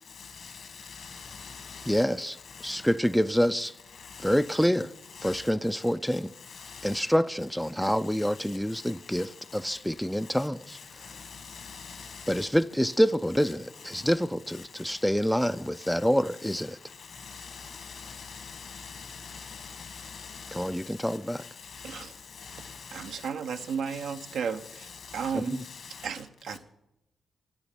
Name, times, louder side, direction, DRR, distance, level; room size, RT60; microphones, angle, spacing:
voice 1, 0.2-2.0 2.5-2.9 3.9-4.5 5.1-5.5 6.5-7.0 8.2-8.3 8.8-9.3 10.7-12.5 13.8-14.1 14.5-14.6 15.8-15.9 16.4-16.6 17.0-22.1 22.3-24.4 24.6-26.1, left 5 dB, 65° left, 2.0 m, -45 dB
voice 2, 1.9-2.4 2.6-3.8 4.2-4.9 5.2-6.3 6.8-10.8 12.3-16.8 20.5-21.4 25.3-25.6, equal, 5° left, 0.4 m, -27 dB
voice 3, 22.9-25.7 26.0-26.6, right 6 dB, 75° right, 0.7 m, -34 dB
9.7 x 7.0 x 9.1 m
hypercardioid pair, 40°, 0 cm